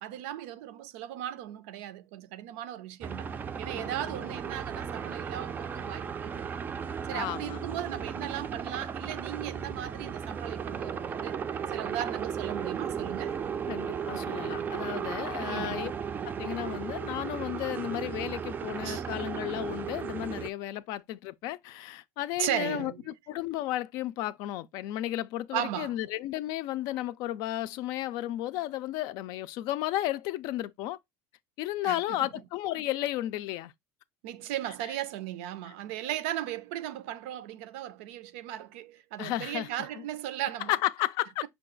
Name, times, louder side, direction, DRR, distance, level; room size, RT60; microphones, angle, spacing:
voice 1, 0.0-3.3 3.6-6.4 7.1-13.4 15.4-15.9 18.8-19.0 22.4-23.0 25.5-26.0 31.8-32.3 34.2-40.7, right 12 dB, 85° right, 0.5 m, -37 dB
sound 1, 3.0-20.5, right 7 dB, 25° right, 0.4 m, -35 dB
voice 2, 3.7-4.3 7.1-7.8 13.7-15.9 16.2-31.0 31.6-33.7 39.2-40.1 40.7-41.5, left 14 dB, 65° left, 0.4 m, -33 dB
5.6 x 2.3 x 3.7 m
supercardioid pair, 120°, 7 cm